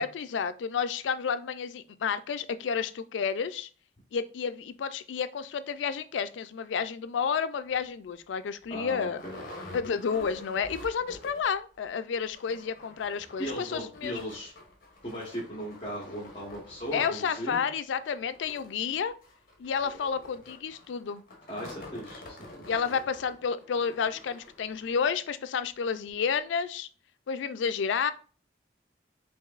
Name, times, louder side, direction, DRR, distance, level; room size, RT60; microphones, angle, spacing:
voice 1, 0.0-3.7 4.1-9.2 9.7-14.1 16.9-19.1 19.6-21.2 22.7-26.9 27.3-28.1, left 6 dB, 85° left, 13 dB, 0.4 m, -31 dB
sound 1, 7.7-7.8 8.3-8.4 8.6-11.6 11.9-12.0 12.2-25.0 25.6-25.7 26.1-26.2, left 1 dB, 50° left, 1.1 m, -48 dB
voice 2, 8.7-9.4 13.4-14.5 15.0-17.6 21.5-22.8, equal, 30° left, -5 dB, 1.1 m, -37 dB
5.9 x 2.6 x 2.4 m, 0.40 s
head